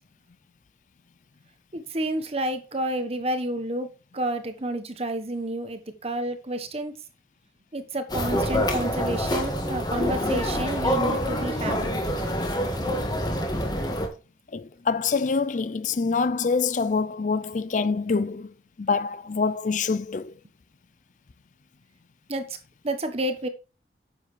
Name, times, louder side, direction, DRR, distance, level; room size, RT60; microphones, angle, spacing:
voice 1, 1.7-3.9 4.1-6.9 7.7-12.0 22.3-22.4 22.8-23.5, right 1 dB, 35° right, 1.1 m, -30 dB
sound 1, 8.1-14.1, equal, 25° left, 1.7 m, -26 dB
voice 2, 14.5-20.3, left 4 dB, 45° left, 0.4 m, -26 dB
9.8 x 7.4 x 3.2 m
head